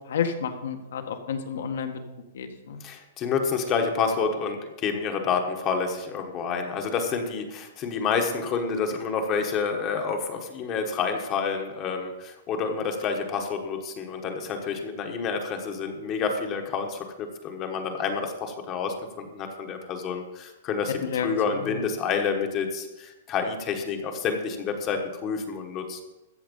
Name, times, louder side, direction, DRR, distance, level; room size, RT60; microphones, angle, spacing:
voice 1, 0.1-1.9 2.3-2.8 21.0-21.3, left 7 dB, 70° left, 5 dB, 1.7 m, -30 dB
voice 2, 2.8-26.0, left 5 dB, 20° left, 4 dB, 1.2 m, -29 dB
14.5 x 7.9 x 5.3 m, 1.1 s
hypercardioid pair, 175°, 0 cm